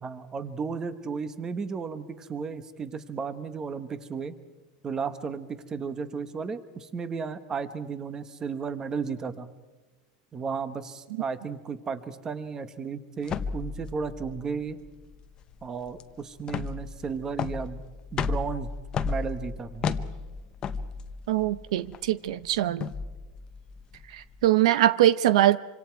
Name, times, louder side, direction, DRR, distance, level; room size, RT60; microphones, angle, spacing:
voice 1, 0.0-4.3 4.8-9.5 10.3-14.8 15.6-17.8 18.1-18.7 19.0-19.9, right 5 dB, 20° right, 1.2 m, -34 dB
sound 1, 13.2-24.5, left 5 dB, 25° left, 0.8 m, -34 dB
voice 2, 21.3-22.9 24.1-25.6, right 13 dB, 80° right, 0.7 m, -22 dB
26.5 x 26.0 x 4.7 m
supercardioid pair, 160°, 3 cm